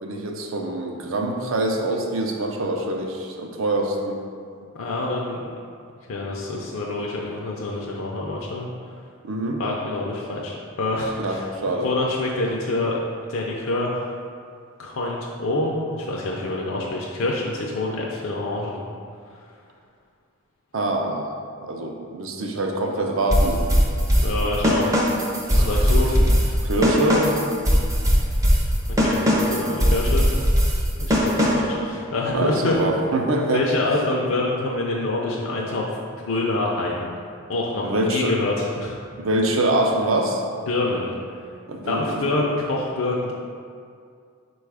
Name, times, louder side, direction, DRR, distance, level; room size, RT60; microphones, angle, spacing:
voice 1, 0.0-4.2 9.2-9.6 11.2-11.9 20.7-21.3 21.6-23.6 25.5-25.6 26.1-26.3 26.6-27.4 32.3-33.7 37.8-38.4 39.2-40.4 41.7-42.2, right 1 dB, 70° right, 2 dB, 0.5 m, -24 dB
voice 2, 4.8-5.4 6.1-8.7 9.6-11.5 11.8-13.0 13.3-14.0 14.8-18.8 24.2-25.0 25.5-26.1 28.9-30.3 31.0-32.8 33.5-36.0 36.2-37.1 37.5-39.0 40.7-41.1 41.9-43.3, left 2 dB, 70° left, -3 dB, 0.4 m, -26 dB
sound 1, 23.3-31.8, equal, 15° right, 0.4 m, -20 dB
4.6 x 2.3 x 4.7 m, 2.2 s
head